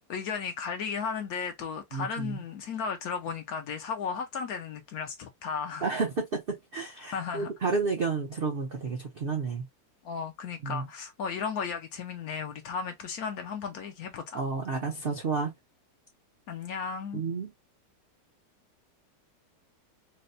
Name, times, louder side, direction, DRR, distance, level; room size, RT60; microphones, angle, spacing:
voice 1, 0.1-5.9 7.1-7.5 10.0-14.4 16.5-17.2, left 6 dB, 70° left, 0.9 m, -35 dB
voice 2, 1.9-2.4 5.8-9.7 10.6-10.9 14.3-15.5 17.1-17.5, right 4 dB, 65° right, 0.5 m, -31 dB
4.0 x 2.0 x 2.6 m
omnidirectional pair, 1.9 m